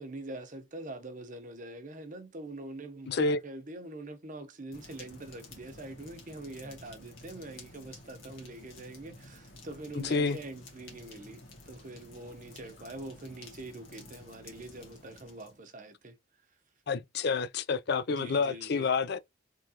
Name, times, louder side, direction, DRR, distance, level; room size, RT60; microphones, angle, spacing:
voice 1, 0.0-16.2 18.2-18.9, right 2 dB, 45° right, 0.8 m, -44 dB
voice 2, 3.1-3.4 9.9-10.4 16.9-19.2, left 4 dB, 55° left, 0.5 m, -29 dB
sound 1, 4.7-15.6, left 2 dB, 90° left, 1.7 m, -51 dB
3.7 x 3.1 x 2.8 m
head